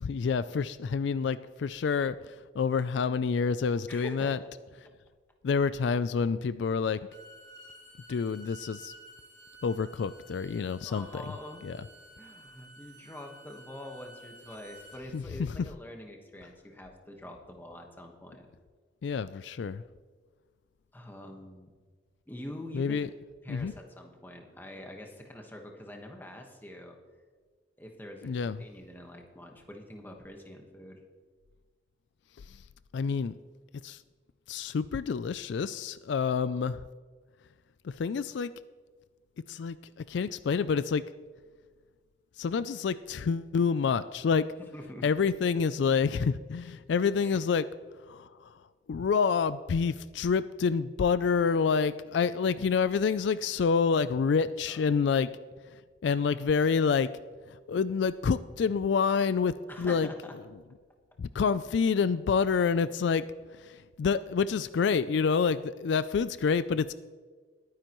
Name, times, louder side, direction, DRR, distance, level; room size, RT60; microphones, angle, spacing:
voice 1, 0.0-4.4 5.4-7.1 8.1-8.9 9.6-11.2 11.6-11.8 15.1-15.5 19.0-19.8 22.7-23.1 23.5-23.7 28.2-28.6 32.9-33.3 33.8-34.0 34.5-36.8 37.8-38.5 39.5-39.8 40.1-41.0 42.4-44.5 45.0-47.7 48.1-48.5 48.9-55.3 56.0-57.1 57.7-60.1 61.2-63.2 63.6-66.9, left 5 dB, 70° left, 15 dB, 0.3 m, -28 dB
voice 2, 3.9-4.5 10.8-11.6 12.2-18.5 20.9-21.7 22.3-23.1 23.4-27.0 27.8-31.0 44.7-45.1 47.2-47.4 54.7-54.8 59.7-60.4, left 1 dB, 10° left, 2 dB, 1.3 m, -45 dB
Bowed string instrument, 7.0-15.0, right 1 dB, 60° right, 3.1 m, -52 dB
20.5 x 9.7 x 3.1 m, 1.5 s
head